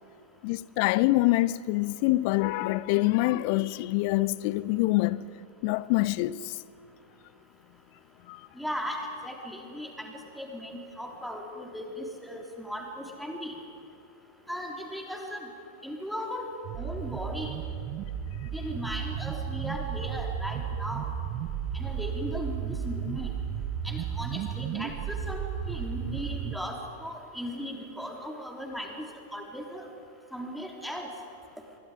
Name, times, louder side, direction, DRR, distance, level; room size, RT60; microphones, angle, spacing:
voice 1, 0.4-5.3 5.6-6.6 8.3-8.4, left 18 dB, 45° left, 0.6 m, -25 dB
voice 2, 8.6-13.6 14.5-15.5 15.8-16.5 16.8-17.5 18.5-21.0 21.7-23.4 23.8-29.0 29.3-29.9 30.3-31.1, equal, ahead, 3.5 m, -37 dB
sound 1, 16.6-26.6, right 8 dB, 40° right, 1.3 m, -34 dB
27.0 x 23.0 x 5.1 m
figure-of-eight pair, 90°, 0 cm